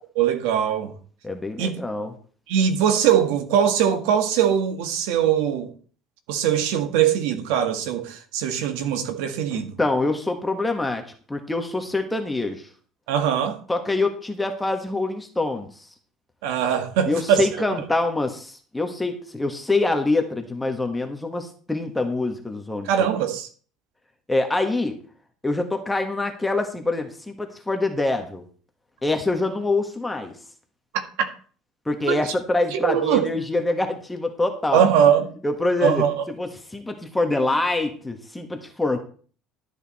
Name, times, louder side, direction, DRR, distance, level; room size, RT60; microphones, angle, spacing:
voice 1, 0.2-0.9 1.6-1.7 2.5-5.7 6.3-9.7 13.1-13.6 16.4-17.5 22.9-23.5 30.9-31.3 32.1-32.2 32.7-33.3 34.7-35.3 35.8-36.1, right 9 dB, 85° right, 1.9 m, -21 dB
voice 2, 1.2-2.1 9.5-11.0 11.3-12.7 13.7-15.9 17.0-23.1 24.3-25.0 25.4-28.4 29.0-30.3 31.8-34.8 35.4-36.0 36.4-39.0, left 2 dB, 10° left, 1.6 m, -25 dB
13.0 x 8.3 x 4.3 m
cardioid pair, 115°, 0 cm